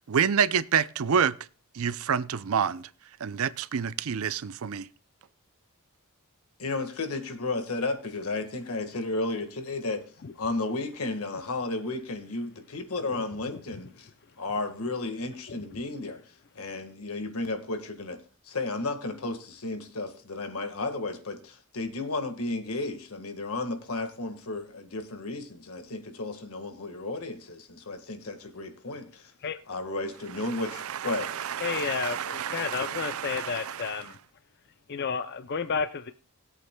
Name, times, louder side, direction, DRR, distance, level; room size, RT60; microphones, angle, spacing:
voice 1, 0.0-1.3 1.7-2.9 3.2-4.9 30.4-34.0, right 7 dB, 70° right, 0.5 m, -28 dB
voice 2, 6.6-10.0 10.3-14.1 14.4-16.2 16.5-18.2 18.4-29.3 29.7-31.3, left 2 dB, 80° left, 1.6 m, -33 dB
voice 3, 13.1-13.8 15.5-15.6 29.4-29.6 31.6-34.2 34.9-36.1, left 6 dB, 50° left, 0.5 m, -32 dB
20.0 x 8.2 x 2.2 m
head